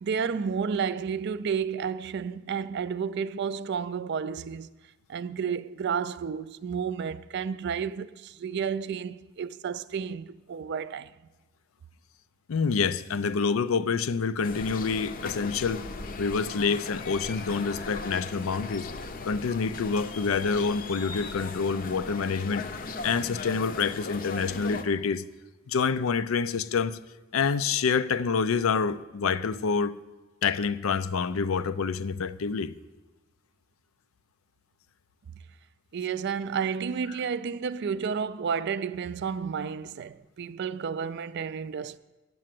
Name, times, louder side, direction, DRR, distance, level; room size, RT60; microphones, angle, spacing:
voice 1, 0.0-4.7 5.1-11.1 35.9-42.0, right 6 dB, 55° right, 0.4 m, -31 dB
voice 2, 12.5-15.8 16.2-18.9 19.2-22.6 23.0-25.2 25.7-27.0 27.3-30.0 30.4-32.7, left 5 dB, 85° left, 0.5 m, -27 dB
sound 1, 14.4-24.8, left 3 dB, 45° left, 0.6 m, -38 dB
9.2 x 7.6 x 7.6 m
head